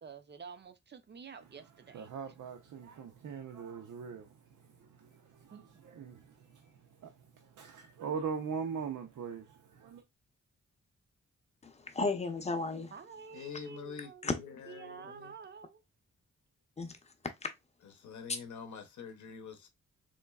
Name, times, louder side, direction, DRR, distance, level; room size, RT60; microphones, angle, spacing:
voice 1, 0.0-2.1 5.5-5.6 12.9-14.3 14.7-15.8, right 6 dB, 35° right, 0.4 m, -49 dB
voice 2, 1.4-10.0, right 6 dB, 75° right, 0.6 m, -42 dB
voice 3, 11.6-12.9 14.2-14.3 16.8-17.5 18.3-18.4, left 3 dB, 20° left, 0.6 m, -34 dB
voice 4, 13.3-14.1 14.8-15.4 18.0-19.7, left 6 dB, 70° left, 0.7 m, -45 dB
3.8 x 3.0 x 2.2 m
wide cardioid pair, 160°, 30 cm